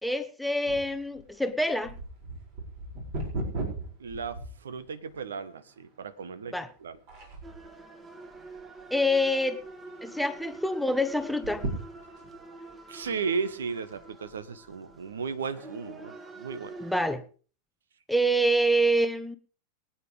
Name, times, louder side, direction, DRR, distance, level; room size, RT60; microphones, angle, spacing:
voice 1, 0.0-2.0 6.5-6.7 8.9-9.6 10.0-11.7 16.8-17.2 18.1-19.4, equal, ahead, 0.9 m, -26 dB
sound 1, 0.7-5.1 5.7-5.8 6.5-6.8 7.1-7.7 8.3-9.0 9.3-9.4 9.7-9.8 11.3-12.4 13.0-13.1, right 2 dB, 50° right, 4.8 m, -37 dB
voice 2, 4.0-6.5 6.8-7.0 12.9-16.7, right 5 dB, 65° right, 1.1 m, -35 dB
sound 2, 7.4-17.2, right 2 dB, 15° right, 2.1 m, -46 dB
23.0 x 9.0 x 3.4 m
figure-of-eight pair, 90°, 0 cm